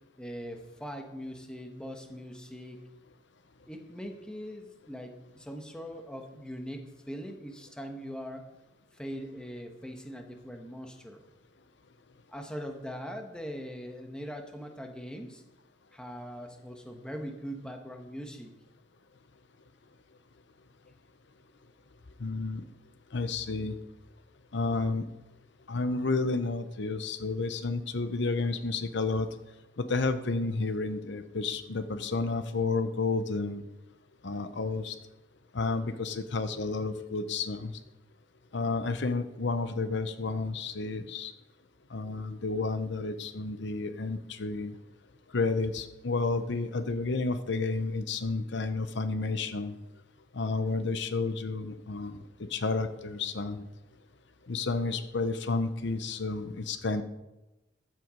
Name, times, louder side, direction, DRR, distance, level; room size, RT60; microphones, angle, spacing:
voice 1, 0.2-2.9 3.7-8.5 8.9-11.2 12.3-15.4 15.9-18.5, equal, 5° left, 4 dB, 1.2 m, -41 dB
voice 2, 22.2-22.6 23.1-23.7 24.5-25.0 25.7-29.3 29.8-33.6 34.2-34.9 35.5-37.7 38.5-41.3 41.9-44.7 45.3-49.7 50.3-53.6 54.5-57.0, left 3 dB, 65° left, 10 dB, 0.7 m, -31 dB
14.0 x 7.7 x 5.2 m, 0.98 s
head